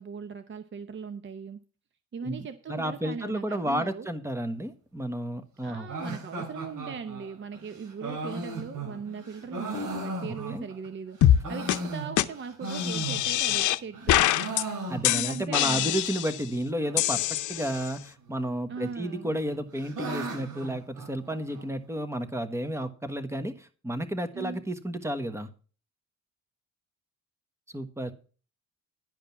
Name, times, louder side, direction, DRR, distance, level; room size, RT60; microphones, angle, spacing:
voice 1, 0.0-1.6 2.1-4.1 5.6-14.3 15.1-16.0 18.7-19.3 24.3-24.6, right 6 dB, 40° right, 9 dB, 0.8 m, -39 dB
voice 2, 2.2-6.2 10.3-10.7 14.9-25.5 27.7-28.1, right 1 dB, 10° right, 10 dB, 1.3 m, -32 dB
sound 1, 5.9-10.9 11.3-13.6 13.9-15.5 15.7-15.8 16.0-16.1 16.8-17.2 18.3-18.9 19.2-21.6, right 2 dB, 75° right, 3.3 m, -37 dB
sound 2, 11.2-11.4 11.7-11.8 12.2-12.3 12.7-13.8 14.1-14.6 15.0-16.4 17.0-17.9, left 12 dB, 75° left, 0.7 m, -24 dB
10.5 x 5.2 x 7.2 m, 0.38 s
cardioid pair, 90°, 30 cm